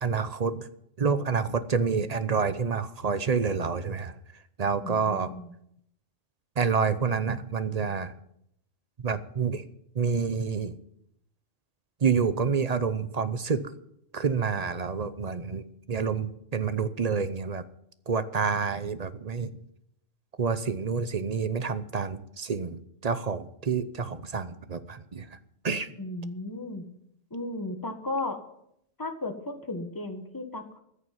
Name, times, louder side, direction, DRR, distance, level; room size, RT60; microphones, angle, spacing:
voice 1, 0.0-0.7 1.0-4.1 4.6-5.3 6.6-8.1 9.0-9.6 9.9-10.7 12.0-13.7 14.1-17.6 18.1-19.5 20.4-25.3 25.6-25.9, right 5 dB, 40° right, 12 dB, 0.7 m, -28 dB
voice 2, 4.8-5.5 26.0-26.8 27.3-28.4 29.0-30.8, left 2 dB, 15° left, 5 dB, 1.5 m, -35 dB
14.0 x 6.9 x 9.2 m, 0.76 s
omnidirectional pair, 1.4 m